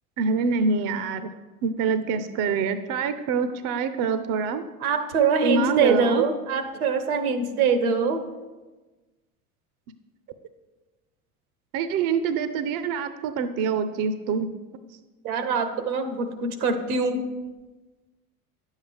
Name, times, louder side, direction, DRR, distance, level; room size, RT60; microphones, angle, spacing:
voice 1, 0.2-1.3 1.6-4.6 5.4-6.2 11.7-14.5, right 5 dB, 50° right, 11 dB, 0.6 m, -25 dB
voice 2, 4.8-8.2 15.2-17.2, right 5 dB, 80° right, 9 dB, 1.0 m, -23 dB
9.6 x 7.3 x 3.4 m, 1.2 s
hypercardioid pair, 75°, 43 cm